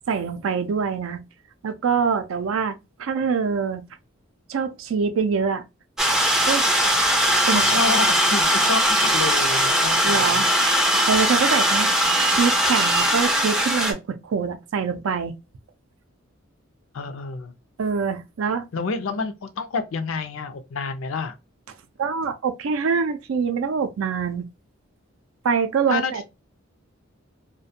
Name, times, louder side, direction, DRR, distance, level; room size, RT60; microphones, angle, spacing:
voice 1, 0.1-1.2 1.6-3.8 4.5-5.6 6.5-6.7 7.5-7.8 8.7-9.0 10.0-10.5 11.1-12.0 12.3-15.3 17.8-18.7 22.0-24.5 25.4-26.2, right 6 dB, 75° right, 0.4 m, -24 dB
sound 1, 6.0-13.9, equal, 5° right, 0.4 m, -20 dB
voice 2, 7.5-10.4 16.9-17.5 18.7-21.3 25.9-26.2, left 4 dB, 70° left, 0.5 m, -28 dB
2.4 x 2.2 x 2.6 m
head